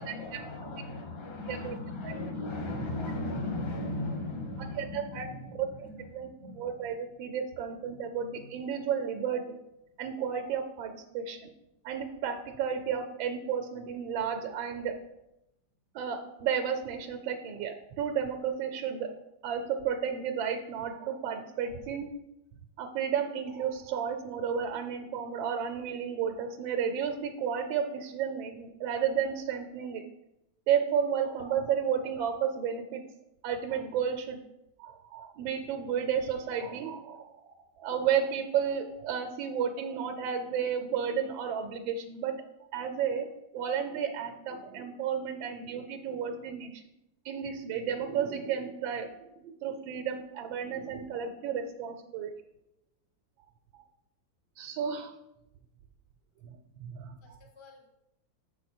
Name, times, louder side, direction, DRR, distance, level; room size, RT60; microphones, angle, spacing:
voice 1, 0.0-6.9 7.9-8.5 57.2-57.9, left 2 dB, 35° left, 2 dB, 0.4 m, -38 dB
voice 2, 4.8-5.3 5.5-5.7 6.1-6.3 6.6-9.4 10.0-11.5 11.8-15.0 15.9-19.1 19.4-22.1 22.8-30.0 30.7-33.0 33.4-34.4 34.8-42.3 42.7-43.3 43.5-46.8 47.2-49.1 49.4-52.3 53.7-53.8 54.6-55.1 56.4-57.4, right 7 dB, 90° right, 5 dB, 1.4 m, -32 dB
6.3 x 4.6 x 4.3 m, 0.88 s
omnidirectional pair, 2.1 m